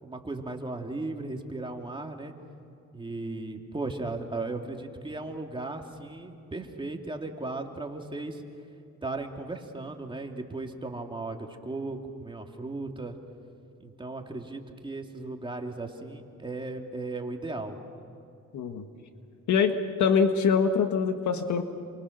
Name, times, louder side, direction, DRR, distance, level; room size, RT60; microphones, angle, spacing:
voice 1, 0.0-2.3 2.9-8.4 9.0-13.1 13.8-17.8, right 2 dB, 15° right, 3 dB, 2.7 m, -36 dB
voice 2, 18.5-18.8 19.5-21.6, left 6 dB, 70° left, 7 dB, 1.7 m, -24 dB
28.5 x 25.0 x 6.7 m, 2.6 s
cardioid pair, 90°, 30 cm